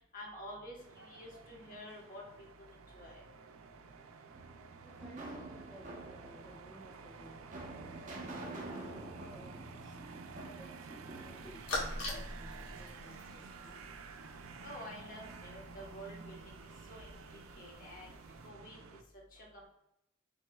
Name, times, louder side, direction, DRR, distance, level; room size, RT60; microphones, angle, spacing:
voice 1, 0.1-3.2 14.6-16.4 16.9-18.1 18.4-18.8 19.3-19.5, equal, 40° left, -3 dB, 1.1 m, -49 dB
sound 1, 0.8-19.0, right 4 dB, 90° right, 0.4 m, -51 dB
sound 2, 4.3-12.5, right 2 dB, 40° right, 0.8 m, -48 dB
voice 2, 4.8-8.0 8.7-10.0 10.6-10.9 11.1-13.9, right 1 dB, 5° left, -10 dB, 0.9 m, -57 dB
sound 3, 11.2-18.5, left 2 dB, 80° left, 1.5 m, -45 dB
6.2 x 2.9 x 2.3 m, 0.81 s
head